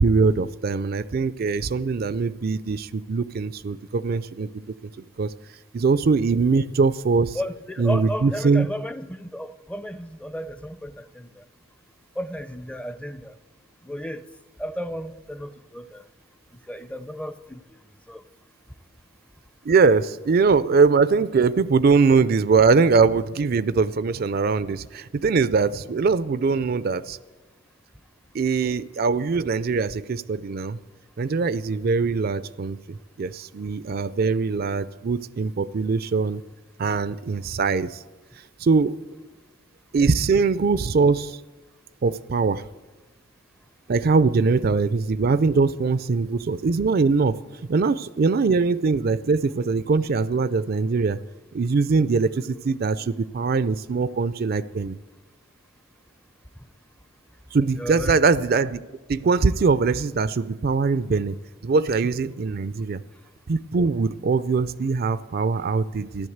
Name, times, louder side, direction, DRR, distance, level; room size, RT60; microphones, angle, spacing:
voice 1, 0.0-4.9 5.2-5.3 5.7-7.4 7.8-8.7 19.6-27.2 28.3-30.8 31.2-36.4 36.8-38.0 38.6-39.0 39.9-41.4 42.0-42.6 43.9-47.4 47.7-51.2 51.5-55.0 57.5-58.8 59.1-61.4 61.6-63.0 63.5-66.3, right 4 dB, 50° right, 0.4 m, -22 dB
voice 2, 7.3-11.4 12.2-13.4 13.8-14.3 14.6-16.1 16.6-17.8 18.1-18.3 57.8-58.2, equal, 5° left, 0.5 m, -34 dB
14.5 x 11.0 x 7.9 m
head